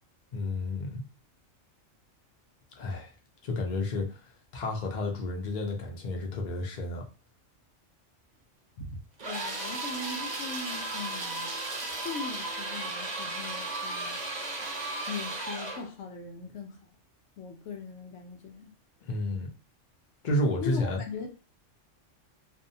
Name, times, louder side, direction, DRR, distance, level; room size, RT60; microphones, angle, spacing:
voice 1, 0.3-1.0 2.8-3.1 3.4-4.3 4.5-7.0 19.0-19.5 20.2-21.0, left 1 dB, 50° left, 1 dB, 0.6 m, -31 dB
voice 2, 8.8-11.5 12.0-14.2 15.1-16.8 17.4-18.7 20.6-21.3, left 4 dB, 75° left, 3 dB, 0.9 m, -40 dB
sound 1, 9.2-15.9, right 2 dB, 45° right, 0.6 m, -35 dB
2.6 x 2.1 x 2.6 m, 0.33 s
omnidirectional pair, 1.3 m